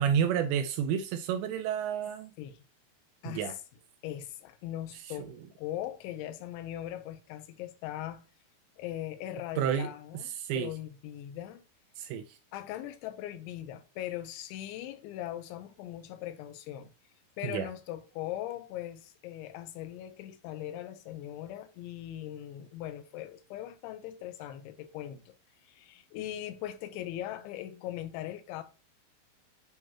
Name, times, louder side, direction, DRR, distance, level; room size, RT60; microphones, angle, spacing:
voice 1, 0.0-2.3 3.3-3.6 9.6-9.9 10.3-10.7 12.0-12.4 17.4-17.7, right 8 dB, 85° right, 2.5 m, -30 dB
voice 2, 4.0-5.3 5.6-8.2 8.8-11.6 12.5-16.9 17.4-25.3 25.6-28.6, left 12 dB, 80° left, 3.1 m, -40 dB
10.0 x 3.9 x 2.9 m
omnidirectional pair, 5.6 m